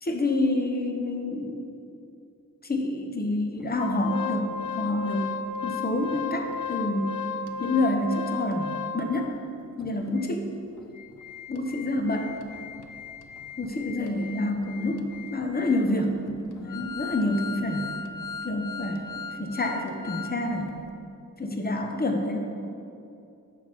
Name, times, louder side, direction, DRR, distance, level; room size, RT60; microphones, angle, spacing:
voice 1, 0.0-1.6 2.6-5.3 5.6-7.2 7.6-9.4 9.8-10.5 11.5-12.3 13.6-16.2 16.6-17.9 18.4-20.7 21.4-22.4, left 2 dB, 30° left, 3 dB, 0.7 m, -28 dB
Organ, 3.7-9.3 9.8-9.9 10.2-10.3 10.8-20.4 20.7-20.8, left 5 dB, 75° left, 0.5 m, -36 dB
6.1 x 4.5 x 6.0 m, 2.6 s
wide cardioid pair, 45°, 32 cm